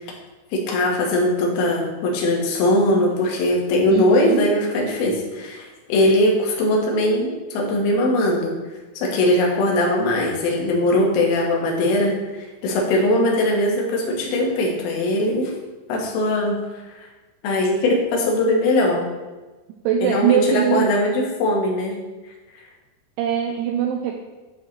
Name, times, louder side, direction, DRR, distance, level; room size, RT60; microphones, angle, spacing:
voice 1, 0.5-8.5 9.0-15.5 15.9-16.6 16.9-17.1 17.4-19.1 20.0-22.0, left 1 dB, 80° left, -1 dB, 3.9 m, -20 dB
voice 2, 3.9-4.4 19.8-20.9 23.2-24.1, right 9 dB, 85° right, 2 dB, 2.8 m, -21 dB
12.0 x 4.8 x 3.1 m, 1.2 s
omnidirectional pair, 5.8 m